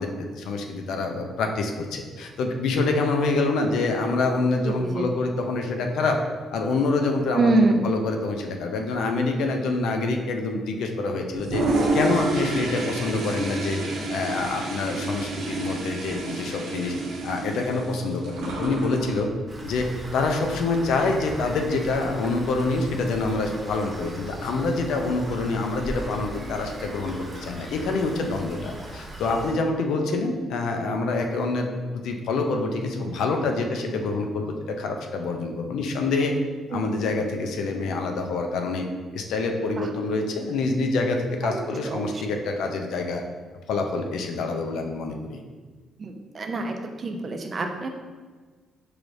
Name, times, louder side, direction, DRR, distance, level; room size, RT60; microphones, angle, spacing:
voice 1, 0.0-6.2 6.5-11.6 11.9-13.8 14.1-17.0 17.2-19.3 19.6-19.9 20.1-31.7 31.9-36.3 36.7-38.9 39.1-43.2 43.7-45.4, left 3 dB, 80° left, 3 dB, 0.5 m, -26 dB
voice 2, 4.6-5.1 7.3-7.9 36.7-36.8 39.8-39.9 41.4-41.6 41.8-42.1 46.0-47.9, right 2 dB, 40° right, 4 dB, 0.5 m, -25 dB
Toilet flush, 11.3-19.2, right 2 dB, 80° right, 0.7 m, -29 dB
Rain, 19.5-29.5, right 1 dB, 20° right, 1.1 m, -39 dB
4.7 x 3.1 x 2.6 m, 1.4 s
cardioid pair, 90°, 0 cm